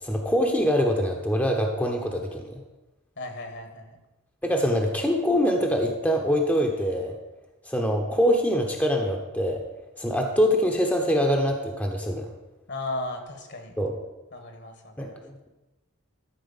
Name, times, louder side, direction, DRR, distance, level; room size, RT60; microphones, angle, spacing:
voice 1, 0.0-2.5 4.4-7.1 7.6-9.6 10.0-12.3 13.8-13.9 15.0-15.5, equal, 5° left, 1 dB, 0.9 m, -24 dB
voice 2, 3.2-4.0 12.7-13.8 14.3-15.2, left 2 dB, 55° left, 5 dB, 1.7 m, -36 dB
13.0 x 4.5 x 7.1 m, 1.1 s
head